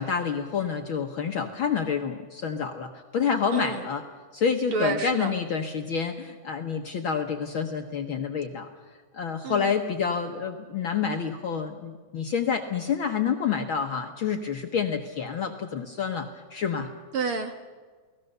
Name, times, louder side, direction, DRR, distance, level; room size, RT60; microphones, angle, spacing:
voice 1, 0.0-4.0 4.3-8.7 9.1-16.9, left 6 dB, 60° left, 4 dB, 1.5 m, -28 dB
voice 2, 3.5-3.9 4.7-5.3 9.4-9.8 17.1-17.5, right 4 dB, 55° right, 6 dB, 1.8 m, -29 dB
29.5 x 18.5 x 6.7 m, 1.5 s
omnidirectional pair, 3.4 m